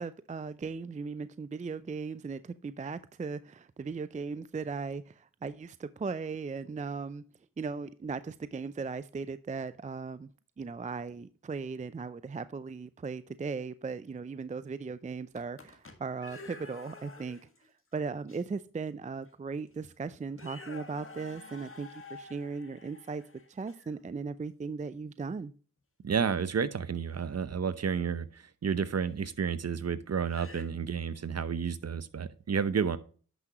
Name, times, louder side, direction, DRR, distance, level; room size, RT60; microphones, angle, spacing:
voice 1, 0.0-7.2 7.6-10.3 10.6-17.4 17.9-23.2 23.5-25.5, right 4 dB, 20° right, 14 dB, 0.4 m, -37 dB
sound 1, 15.4-17.7 18.3-18.4 19.3-19.4 19.7-19.9 20.3-24.0 27.1-27.3 29.1-29.2 30.2-30.6, left 3 dB, 35° left, 1.7 m, -49 dB
voice 2, 26.0-33.0, right 6 dB, 45° right, 15 dB, 0.8 m, -31 dB
10.5 x 6.0 x 3.0 m, 0.40 s
cardioid pair, 55°, 35 cm